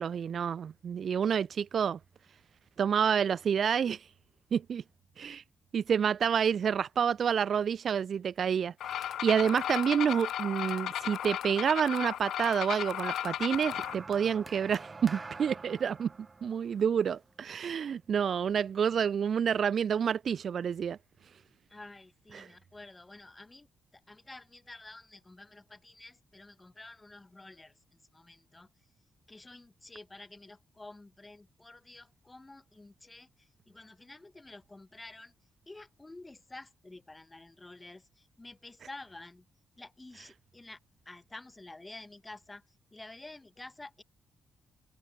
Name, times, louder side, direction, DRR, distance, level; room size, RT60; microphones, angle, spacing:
voice 1, 0.0-2.0 2.8-4.0 4.5-4.8 5.2-5.4 5.7-16.1 16.4-21.0 22.3-22.5, right 7 dB, 50° right, 0.5 m, -29 dB
sound 1, 8.8-13.9, left 11 dB, 75° left, 2.1 m, -35 dB
sound 2, 13.5-18.0 18.9-19.1, right 3 dB, 25° right, 2.4 m, -47 dB
voice 2, 21.7-23.7 23.9-27.7 28.1-28.7 29.3-33.3 33.7-35.3 35.7-39.5 39.8-40.8 41.0-42.6 42.9-44.0, left 2 dB, 15° left, 5.0 m, -50 dB
cardioid pair, 130°, 0 cm